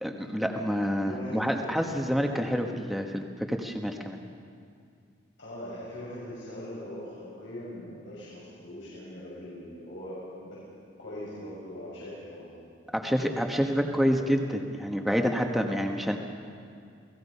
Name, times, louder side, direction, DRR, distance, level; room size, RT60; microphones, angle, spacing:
voice 1, 0.0-4.2 12.9-14.4 14.8-16.2, equal, ahead, 2 dB, 1.3 m, -28 dB
voice 2, 1.0-2.1 5.4-10.6 11.0-14.2, left 1 dB, 85° left, -8 dB, 6.4 m, -42 dB
28.5 x 18.5 x 5.6 m, 2.3 s
head